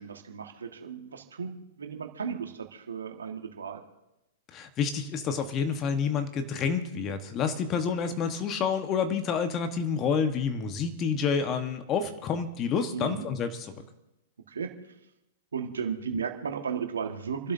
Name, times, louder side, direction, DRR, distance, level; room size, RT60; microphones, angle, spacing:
voice 1, 0.0-3.8 12.9-13.3 14.5-14.7 15.5-17.5, right 6 dB, 80° right, 4 dB, 1.7 m, -35 dB
voice 2, 4.5-13.7, left 6 dB, 30° left, 8 dB, 1.3 m, -29 dB
28.5 x 12.0 x 2.8 m, 0.92 s
hypercardioid pair, 110°, 0 cm